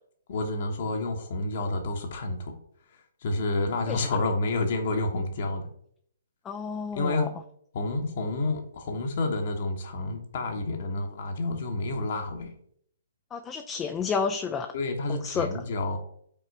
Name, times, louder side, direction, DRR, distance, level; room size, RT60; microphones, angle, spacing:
voice 1, 0.3-2.6 2.9-5.6 6.9-7.3 7.7-12.5 14.7-16.0, left 2 dB, 50° left, 3 dB, 1.1 m, -29 dB
voice 2, 6.5-7.3 13.3-14.7 15.1-15.5, left 6 dB, 15° left, 6 dB, 0.4 m, -30 dB
5.5 x 3.6 x 4.7 m, 0.66 s
figure-of-eight pair, 130°, 0 cm